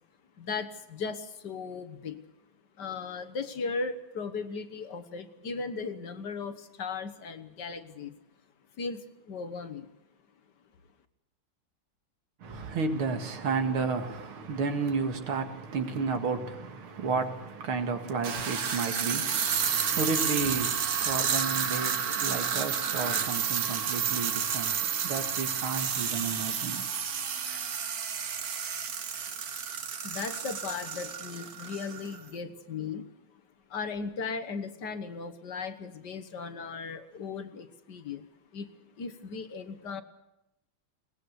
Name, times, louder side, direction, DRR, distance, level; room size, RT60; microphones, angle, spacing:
voice 1, 0.4-2.2 2.8-8.1 8.8-9.9 30.0-33.1 33.7-38.3 38.5-38.7 39.0-40.0, left 5 dB, 55° left, 1.8 m, -37 dB
voice 2, 12.4-26.9, right 4 dB, 75° right, 2.8 m, -32 dB
sound 1, 14.8-15.0 16.0-16.1 18.1-32.2, right 7 dB, 50° right, 1.5 m, -31 dB
22.5 x 19.5 x 8.1 m
omnidirectional pair, 2.4 m